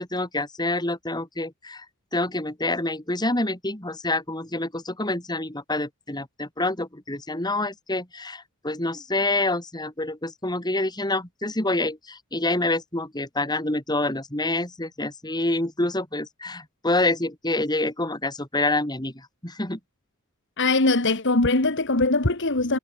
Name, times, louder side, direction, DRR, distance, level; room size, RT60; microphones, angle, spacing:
voice 1, 0.0-1.9 2.1-19.8, left 2 dB, 20° left, 3.7 m, -27 dB
voice 2, 20.6-22.8, left 2 dB, 55° left, 2.1 m, -21 dB
head